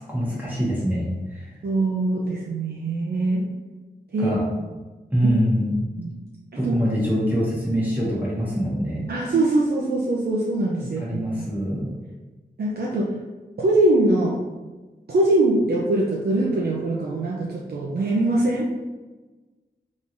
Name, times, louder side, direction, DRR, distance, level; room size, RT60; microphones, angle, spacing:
voice 1, 0.0-1.4 4.2-4.4 5.1-5.7 6.6-9.0 11.0-12.0, equal, 10° right, -7 dB, 1.1 m, -24 dB
voice 2, 1.6-3.5 4.1-4.4 5.2-5.4 6.0-6.1 6.5-6.8 9.1-11.4 12.6-13.1 13.6-14.4 15.1-18.7, right 2 dB, 65° right, -4 dB, 0.5 m, -22 dB
3.7 x 3.0 x 2.6 m, 1.2 s
wide cardioid pair, 80°, 18 cm